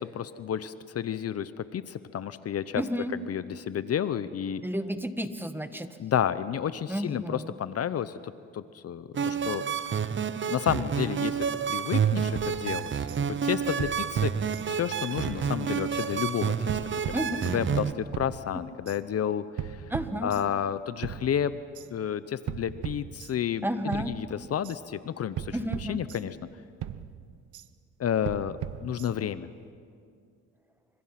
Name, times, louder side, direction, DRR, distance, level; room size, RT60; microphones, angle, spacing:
voice 1, 0.0-2.8 3.1-4.6 6.0-9.6 10.5-13.1 13.4-14.3 14.7-16.8 17.5-19.8 20.2-21.6 21.9-26.4 28.0-28.6 28.8-29.5, left 9 dB, 55° left, 14 dB, 0.8 m, -31 dB
voice 2, 2.7-3.1 4.6-6.0 6.9-7.5 17.1-17.6 19.9-20.3 23.6-24.1 25.5-26.0, equal, 5° right, 9 dB, 1.5 m, -32 dB
sound 1, 9.1-17.9, right 7 dB, 40° right, 1.0 m, -29 dB
sound 2, 12.3-13.2 13.8-14.9 15.2-16.1 16.7-17.8 18.1-19.0 19.6-20.7 21.0-21.9 22.5-23.6 23.9-24.8 25.4-26.5 26.8-27.7 28.2-29.4, right 10 dB, 75° right, 1.0 m, -39 dB
29.5 x 25.5 x 5.9 m, 2.3 s
cardioid pair, 90°, 30 cm